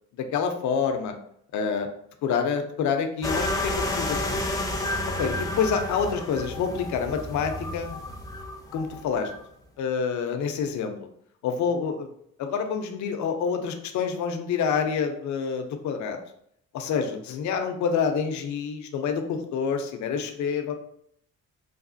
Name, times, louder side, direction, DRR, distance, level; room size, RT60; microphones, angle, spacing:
voice 1, 0.1-1.1 1.5-1.9 2.2-4.4 5.2-8.0 8.7-9.3 9.8-10.9 11.4-12.1 12.4-16.2 16.7-20.7, left 6 dB, 70° left, 6 dB, 0.5 m, -27 dB
sound 1, 3.2-9.4, left 1 dB, 10° left, 0.5 m, -31 dB
3.2 x 2.3 x 2.5 m, 0.71 s
cardioid pair, 90°, 30 cm